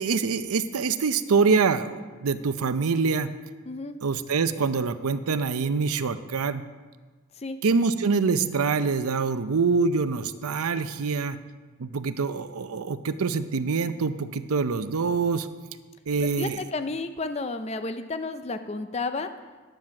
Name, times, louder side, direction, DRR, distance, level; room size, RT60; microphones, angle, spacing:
voice 1, 0.0-3.3 4.0-6.6 7.6-11.4 11.8-15.5 16.1-16.6, right 4 dB, 85° right, 11 dB, 0.6 m, -25 dB
voice 2, 3.6-4.0 7.4-7.6 16.2-19.3, left 3 dB, 30° left, 9 dB, 0.5 m, -32 dB
9.9 x 9.1 x 5.8 m, 1.4 s
head